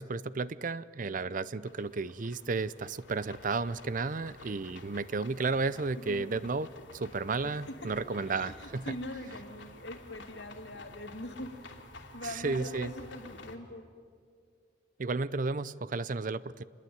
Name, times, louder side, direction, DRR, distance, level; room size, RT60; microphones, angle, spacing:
voice 1, 0.0-6.7 6.9-8.9 12.4-12.9 15.0-16.6, right 3 dB, 45° right, 17 dB, 0.6 m, -33 dB
sound 1, 1.7-13.6, left 2 dB, 80° left, 3.0 m, -51 dB
voice 2, 7.4-11.8 12.1-13.9, left 1 dB, 65° left, 5 dB, 2.5 m, -43 dB
26.5 x 21.0 x 9.3 m, 2.1 s
head